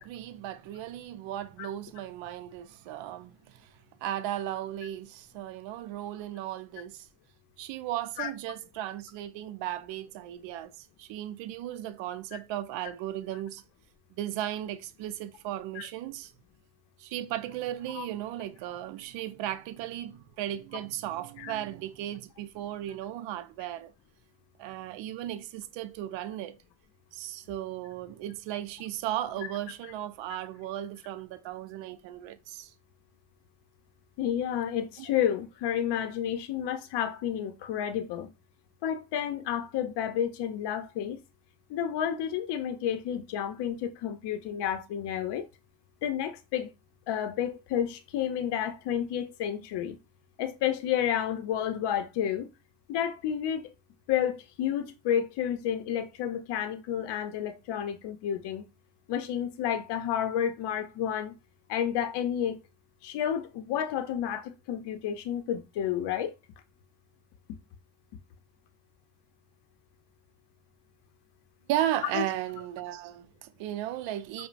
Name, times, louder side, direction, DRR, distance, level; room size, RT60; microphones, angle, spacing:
voice 1, 0.0-3.7 4.0-7.1 7.6-13.6 14.2-16.3 17.0-23.9 24.6-26.6 27.1-32.7 71.7-74.5, right 12 dB, 80° right, 0.5 m, -36 dB
voice 2, 34.2-38.3 38.8-41.2 41.7-45.4 46.0-46.7 47.1-50.0 50.4-52.5 52.9-53.7 54.1-58.6 59.1-61.3 61.7-62.6 63.0-66.3 72.1-72.2, left 9 dB, 65° left, 0.6 m, -30 dB
5.1 x 2.1 x 2.5 m
cardioid pair, 110°, 44 cm